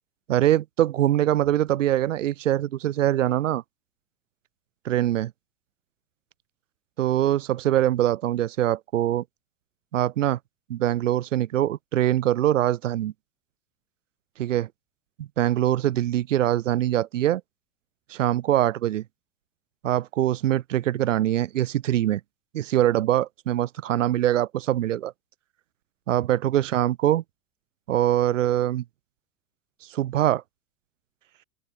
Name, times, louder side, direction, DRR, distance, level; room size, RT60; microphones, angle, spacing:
voice 1, 0.3-3.6 4.8-5.3 7.0-9.2 9.9-10.4 10.7-13.1 14.4-14.7 15.2-17.4 18.1-19.0 19.8-22.2 22.5-25.1 26.1-27.2 27.9-28.8 29.9-30.4, right 12 dB, 80° right, 0.7 m, -23 dB
open air
figure-of-eight pair, 85°, 38 cm